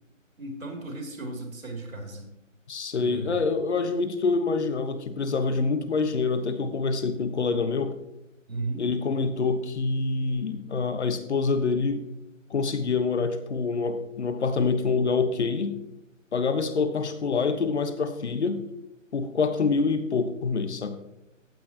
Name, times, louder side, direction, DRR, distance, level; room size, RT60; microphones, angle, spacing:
voice 1, 0.4-2.3 3.0-3.4 8.5-8.8, right 2 dB, 90° right, 1 dB, 3.3 m, -35 dB
voice 2, 2.7-7.9 8.8-12.0 12.5-15.8 16.3-18.6 19.1-21.0, left 4 dB, 55° left, 10 dB, 1.3 m, -26 dB
15.0 x 9.0 x 3.0 m, 0.90 s
hypercardioid pair, 160°, 40 cm